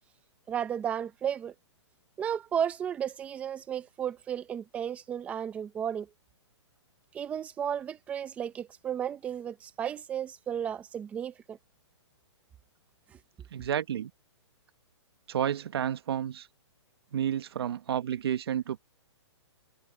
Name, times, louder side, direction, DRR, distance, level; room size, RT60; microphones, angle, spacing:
voice 1, 0.5-1.5 2.2-6.1 7.1-11.6, right 9 dB, 10° right, 0.8 m, -33 dB
voice 2, 13.5-14.1 15.3-16.5 17.1-18.8, right 9 dB, 55° right, 1.7 m, -31 dB
hypercardioid pair, 170°, 15 cm